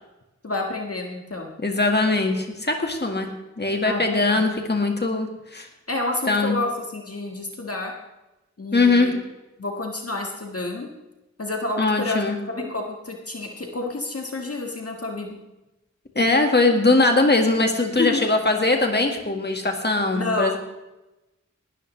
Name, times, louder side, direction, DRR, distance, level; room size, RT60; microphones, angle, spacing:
voice 1, 0.4-1.5 3.8-4.4 5.9-7.9 8.6-9.1 9.6-10.9 11.4-12.2 12.5-15.4 18.0-18.2 20.1-20.6, left 2 dB, 55° left, 1 dB, 1.6 m, -29 dB
voice 2, 1.6-3.3 3.6-5.7 6.3-6.6 8.7-9.2 11.8-12.7 16.2-20.6, left 3 dB, 35° left, 3 dB, 1.7 m, -21 dB
19.5 x 12.5 x 3.2 m, 1.0 s
wide cardioid pair, 65°, 29 cm